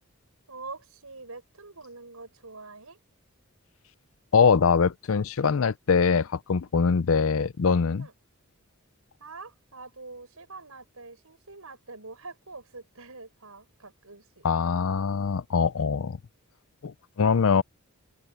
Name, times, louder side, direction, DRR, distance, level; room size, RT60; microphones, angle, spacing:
voice 1, 0.5-3.0 8.0-8.1 9.2-14.4, right 3 dB, 75° right, 6.1 m, -45 dB
voice 2, 4.3-8.1 14.4-16.2 16.8-17.6, left 5 dB, 65° left, 0.5 m, -23 dB
open air
head